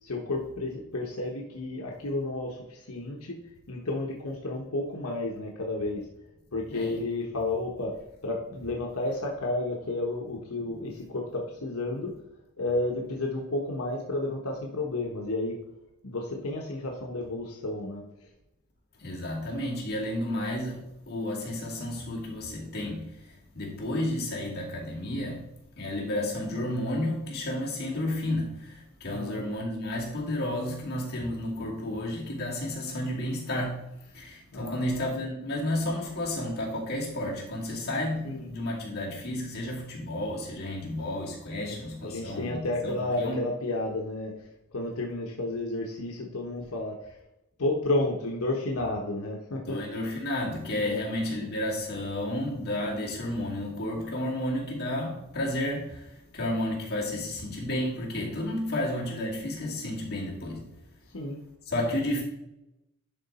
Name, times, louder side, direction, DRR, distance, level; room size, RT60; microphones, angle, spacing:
voice 1, 0.0-3.4 3.7-6.1 6.5-8.0 8.2-12.1 12.6-15.6 16.0-18.3 29.1-29.4 34.5-35.1 38.2-38.5 41.6-47.2 47.6-49.8 50.8-51.1 61.1-61.4, left 2 dB, 80° left, 1.1 m, -32 dB
voice 2, 19.0-25.5 25.8-33.9 34.1-43.4 49.7-60.7 61.7-62.2, left 1 dB, 45° left, 2.3 m, -32 dB
11.0 x 3.9 x 4.2 m
head